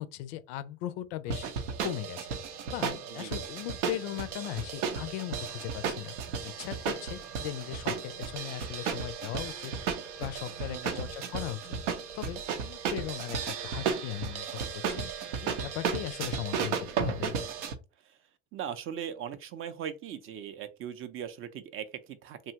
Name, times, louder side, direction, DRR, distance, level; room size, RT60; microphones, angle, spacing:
voice 1, 0.0-1.5 1.8-6.1 6.4-9.7 10.2-11.6 12.1-14.5 14.7-15.1 15.4-17.3, left 13 dB, 65° left, 0.5 m, -38 dB
sound 1, 1.3-17.7, right 6 dB, 85° right, 0.6 m, -34 dB
voice 2, 10.7-11.1 18.0-18.2 18.5-22.5, right 9 dB, 40° right, 0.5 m, -39 dB
2.8 x 2.3 x 2.8 m
hypercardioid pair, 85°, 35 cm